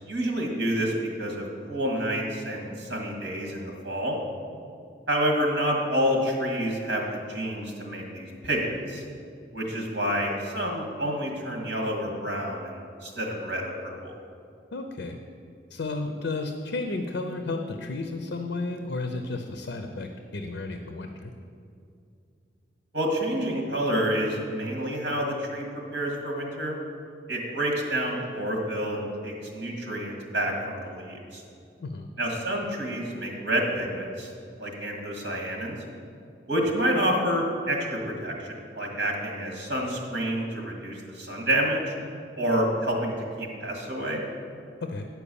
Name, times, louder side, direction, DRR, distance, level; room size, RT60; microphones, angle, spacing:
voice 1, 0.1-0.9 1.2-4.2 5.1-9.0 9.5-14.1 22.9-25.7 25.9-26.8 27.3-31.4 32.2-34.3 34.6-35.8 36.5-41.9 42.4-44.2, equal, 70° right, 1 dB, 1.7 m, -28 dB
voice 2, 14.7-15.2 15.7-21.3 31.8-32.1 44.8-45.1, left 3 dB, 80° left, 5 dB, 0.6 m, -33 dB
9.9 x 4.6 x 6.9 m, 2.5 s
head